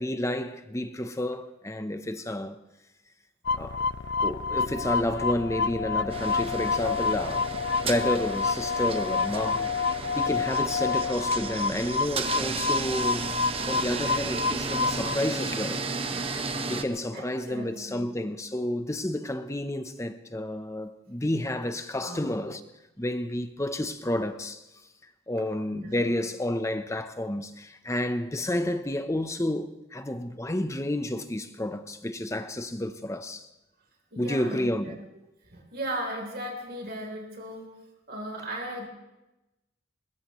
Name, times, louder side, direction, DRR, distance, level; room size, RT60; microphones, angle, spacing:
voice 1, 0.0-2.6 3.5-3.8 4.2-7.5 7.8-9.7 10.1-13.3 13.7-16.2 16.7-22.6 23.0-24.6 25.3-33.5 34.2-35.0, left 1 dB, 15° left, 0.7 m, -30 dB
sound 1, 3.4-15.2, left 5 dB, 55° left, 0.5 m, -28 dB
sound 2, 6.1-16.8, right 4 dB, 30° right, 1.0 m, -33 dB
voice 2, 16.2-16.5 17.1-18.1 22.0-22.5 25.7-26.2 34.1-35.0 35.5-37.7 38.1-38.9, right 1 dB, 50° right, 3.4 m, -37 dB
21.5 x 21.0 x 3.1 m
head